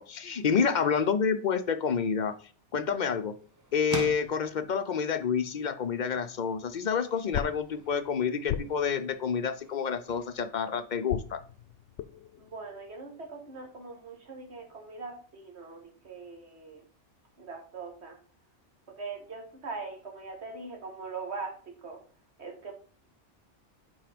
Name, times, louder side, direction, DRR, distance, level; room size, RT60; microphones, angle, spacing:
voice 1, 0.0-2.3 2.7-3.4 3.7-11.4, left 6 dB, 50° left, 10 dB, 0.6 m, -28 dB
sound 1, 1.9-11.6, right 2 dB, 20° right, 0.7 m, -46 dB
sound 2, 6.4-10.5 11.1-14.1, left 10 dB, 80° left, 0.9 m, -41 dB
voice 2, 12.4-16.8 17.4-18.2 19.0-22.0 22.4-22.7, right 4 dB, 65° right, 2 dB, 1.9 m, -41 dB
5.8 x 4.8 x 5.0 m, 0.40 s
omnidirectional pair, 1.2 m